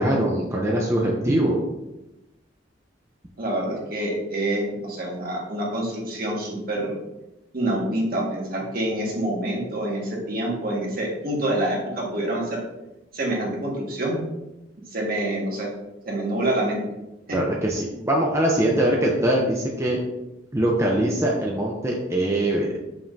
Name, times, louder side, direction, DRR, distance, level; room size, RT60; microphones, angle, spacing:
voice 1, 0.0-1.6 17.3-20.0 20.5-22.8, right 1 dB, 15° right, -2 dB, 0.7 m, -22 dB
voice 2, 3.4-6.9 7.5-12.6 13.1-14.2 14.9-15.7 16.0-16.8 17.3-17.4, right 1 dB, 55° right, -3 dB, 1.9 m, -26 dB
7.1 x 5.8 x 2.8 m, 0.95 s
head